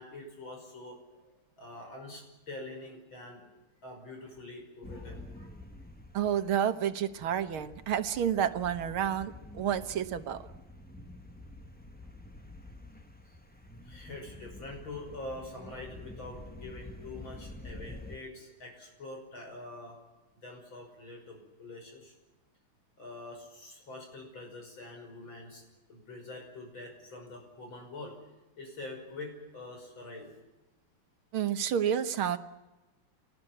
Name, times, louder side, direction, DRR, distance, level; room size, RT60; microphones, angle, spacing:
voice 1, 0.0-3.5 3.8-5.5 13.8-20.0 20.4-22.1 23.0-25.6 25.9-28.2 28.6-30.3, left 2 dB, 70° left, 2 dB, 6.8 m, -45 dB
sound 1, 4.8-18.2, left 1 dB, 5° left, 1.0 m, -48 dB
voice 2, 6.1-10.5 31.3-32.4, right 9 dB, 80° right, 10 dB, 2.0 m, -30 dB
26.5 x 19.5 x 9.0 m, 1.1 s
omnidirectional pair, 2.3 m